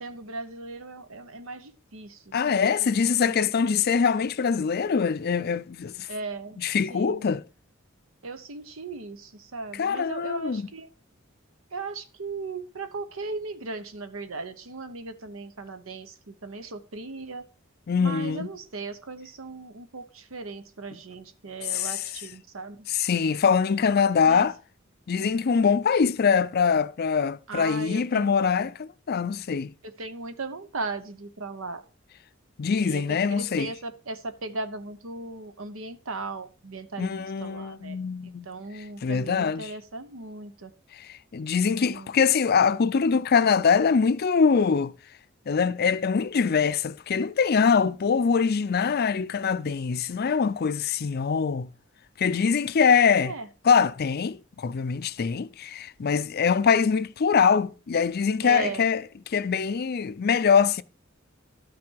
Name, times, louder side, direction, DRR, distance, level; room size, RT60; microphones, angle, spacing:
voice 1, 0.0-2.2 2.5-3.8 6.1-6.6 6.9-7.3 8.2-10.9 11.7-17.4 18.0-22.8 24.3-24.5 27.5-28.4 30.0-31.8 32.8-38.0 38.4-40.7 41.8-42.1 53.2-53.5 58.4-58.8, right 3 dB, 85° right, 1.1 m, -37 dB
voice 2, 2.3-6.1 6.6-7.4 9.7-10.7 17.9-18.5 21.6-22.1 22.9-24.6 25.1-29.7 32.6-33.7 37.0-38.5 39.0-39.7 41.0-44.9 45.5-51.7 52.2-53.3 53.6-60.8, left 6 dB, 50° left, 0.4 m, -23 dB
12.5 x 6.0 x 4.6 m
head